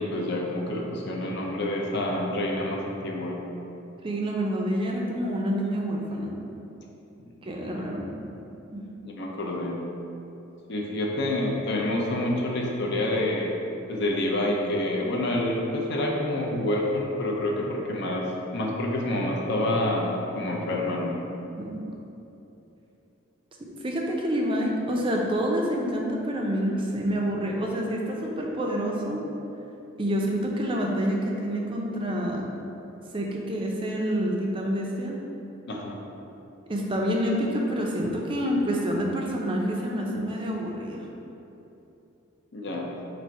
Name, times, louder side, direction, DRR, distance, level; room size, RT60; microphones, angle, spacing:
voice 1, 0.0-3.4 7.2-7.3 7.6-7.7 9.0-9.8 10.7-13.5 13.9-21.1 35.7-36.0 42.5-42.9, left 1 dB, 55° left, -2 dB, 0.5 m, -28 dB
voice 2, 4.0-6.4 7.4-8.1 8.7-8.8 21.6-21.8 23.8-29.2 30.0-32.5 33.1-35.2 36.7-41.0, equal, 25° right, -1 dB, 0.4 m, -27 dB
4.2 x 2.5 x 4.6 m, 2.9 s
head